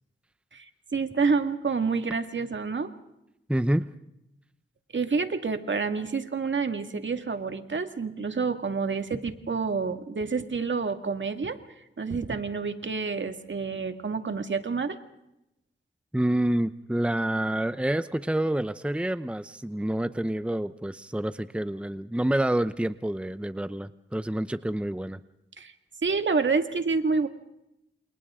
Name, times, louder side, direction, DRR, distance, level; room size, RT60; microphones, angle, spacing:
voice 1, 0.5-2.9 4.9-11.6 12.0-15.0 25.6-25.7 26.0-27.3, right 4 dB, 65° right, 7 dB, 2.0 m, -28 dB
voice 2, 3.5-3.9 16.1-25.2, right 1 dB, 5° right, 13 dB, 0.8 m, -28 dB
29.0 x 28.0 x 3.7 m, 0.84 s
wide cardioid pair, 65°, 21 cm